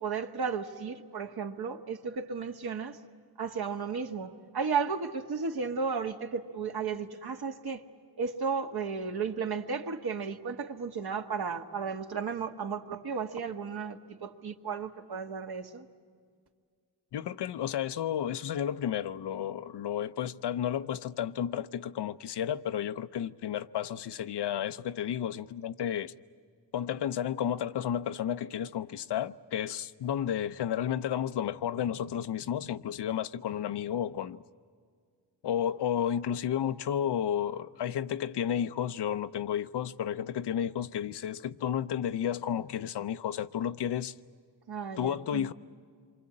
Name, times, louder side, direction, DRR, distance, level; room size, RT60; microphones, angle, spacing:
voice 1, 0.0-3.0 3.4-7.8 8.2-15.9 44.7-45.5, right 5 dB, 55° right, 1.6 m, -34 dB
voice 2, 17.1-26.1 26.7-34.4 35.4-44.1 45.0-45.5, left 9 dB, 65° left, 0.7 m, -32 dB
27.0 x 24.5 x 8.6 m
cardioid pair, 90°, 44 cm